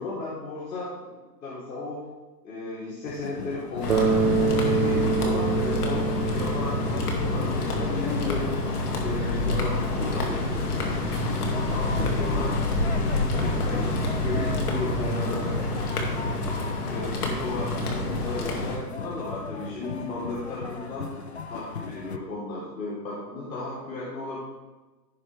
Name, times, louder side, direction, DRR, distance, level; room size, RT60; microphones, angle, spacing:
voice 1, 0.0-2.0 2.4-8.4 9.0-10.7 11.3-12.6 13.1-15.6 16.2-16.5 16.8-21.1 21.5-24.4, left 2 dB, 85° left, -9 dB, 3.7 m, -35 dB
sound 1, 3.1-22.2, left 5 dB, 45° left, 0.5 m, -38 dB
sound 2, 3.8-18.8, left 2 dB, 60° left, 2.4 m, -27 dB
Bass guitar, 3.9-7.9, right 4 dB, 45° right, 1.1 m, -26 dB
16.0 x 5.8 x 3.4 m, 1.2 s
hypercardioid pair, 175°, 50 cm